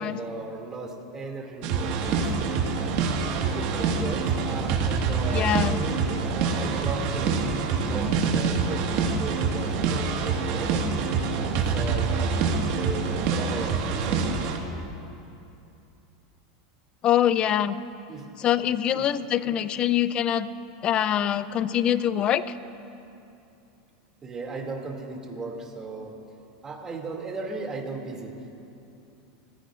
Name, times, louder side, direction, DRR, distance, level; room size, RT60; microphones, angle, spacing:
voice 1, 0.0-2.6 3.4-11.0 11.6-14.2 18.1-18.3 18.9-19.1 19.4-19.6 24.2-26.2 26.6-28.4, right 3 dB, 20° right, 0 dB, 2.6 m, -36 dB
sound 1, 1.6-14.6, right 5 dB, 60° right, 1.8 m, -26 dB
voice 2, 5.3-5.8 17.0-17.8 18.4-20.5 20.8-22.4, left 10 dB, 35° left, 14 dB, 0.6 m, -24 dB
28.5 x 15.5 x 2.6 m, 2.8 s
supercardioid pair, 125°, 3 cm